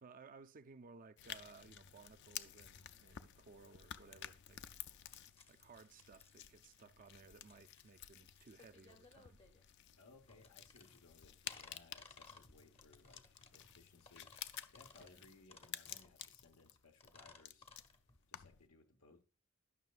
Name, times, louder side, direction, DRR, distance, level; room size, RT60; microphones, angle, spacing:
voice 1, 0.0-4.6 5.5-9.4 15.0-15.2, right 4 dB, 40° right, 0.4 m, -59 dB
sound 1, 1.2-18.7, left 10 dB, 55° left, 0.4 m, -53 dB
sound 2, 5.0-18.4, left 4 dB, 25° left, 0.7 m, -62 dB
voice 2, 10.0-14.3 14.7-17.7 18.3-19.2, left 3 dB, 90° left, 1.2 m, -64 dB
11.0 x 6.2 x 2.4 m
head